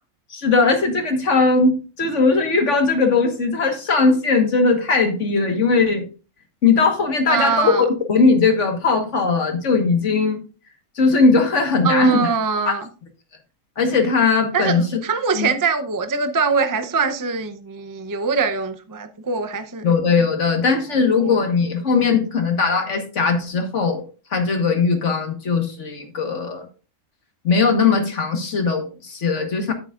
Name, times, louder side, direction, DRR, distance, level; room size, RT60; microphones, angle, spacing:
voice 1, 0.3-6.0 6.6-10.4 11.0-12.3 12.6-12.7 13.8-14.8 15.3-15.5 19.8-24.0 24.3-26.7 27.4-29.7, left 4 dB, 55° left, 1.7 m, -19 dB
voice 2, 7.3-7.8 11.8-12.9 14.5-19.9 21.1-21.4, right 5 dB, 30° right, 0.4 m, -23 dB
10.0 x 8.8 x 2.4 m
omnidirectional pair, 1.5 m